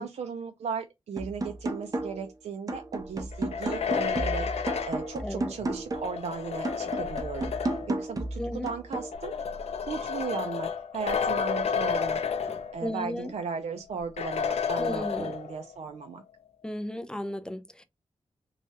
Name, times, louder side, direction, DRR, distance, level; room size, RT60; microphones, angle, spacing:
voice 1, 0.0-9.3 9.9-12.2 12.7-16.2, right 5 dB, 80° right, 0.4 m, -36 dB
sound 1, 1.2-2.3 2.7-6.2 6.6-9.2, right 2 dB, 35° right, 0.6 m, -33 dB
sound 2, 3.3-8.0 8.9-13.1 13.4-13.5 14.2-15.7, left 6 dB, 70° left, 0.4 m, -31 dB
voice 2, 5.2-5.5 8.4-8.7 12.8-13.3 14.8-15.3 16.6-17.8, left 1 dB, 5° left, 0.3 m, -34 dB
3.2 x 2.2 x 2.6 m
wide cardioid pair, 150°, 11 cm